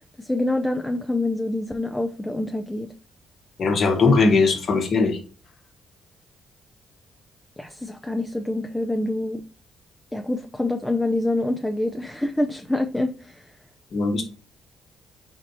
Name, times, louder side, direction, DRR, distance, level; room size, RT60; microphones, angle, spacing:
voice 1, 0.2-2.9 7.6-9.4 10.1-13.4, left 2 dB, 5° left, 4 dB, 0.5 m, -26 dB
voice 2, 3.6-5.2 13.9-14.2, left 4 dB, 55° left, 4 dB, 1.3 m, -19 dB
4.5 x 4.3 x 2.7 m, 0.37 s
cardioid pair, 90°, 0 cm